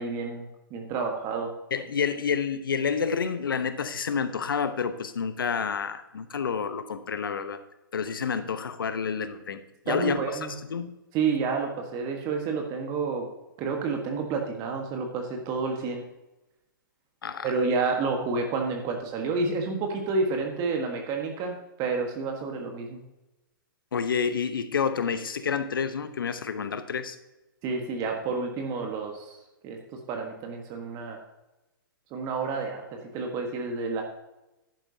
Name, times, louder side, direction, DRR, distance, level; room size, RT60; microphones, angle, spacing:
voice 1, 0.0-1.5 9.9-10.5 11.1-13.2 13.6-16.0 17.4-23.0 27.6-29.4 29.6-31.2 32.1-34.0, right 4 dB, 30° right, 3 dB, 1.4 m, -29 dB
voice 2, 1.7-7.6 7.9-10.2 10.7-10.9 17.2-17.5 23.9-27.2, left 6 dB, 75° left, 11 dB, 1.0 m, -29 dB
11.0 x 9.6 x 2.8 m, 0.99 s
hypercardioid pair, 125°, 12 cm